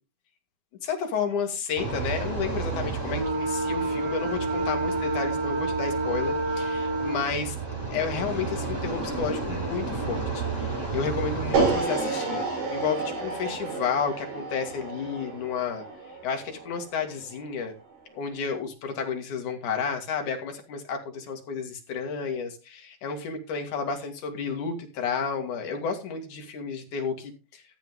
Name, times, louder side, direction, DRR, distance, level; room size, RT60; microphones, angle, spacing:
voice 1, 0.8-7.6 7.9-15.9 16.2-17.8 18.2-27.6, left 6 dB, 60° left, 4 dB, 3.5 m, -31 dB
sound 1, 1.8-11.7, right 3 dB, 15° right, 5.2 m, -29 dB
sound 2, 11.5-17.7, right 4 dB, 90° right, 5.9 m, -30 dB
13.5 x 9.5 x 3.7 m, 0.31 s
omnidirectional pair, 4.3 m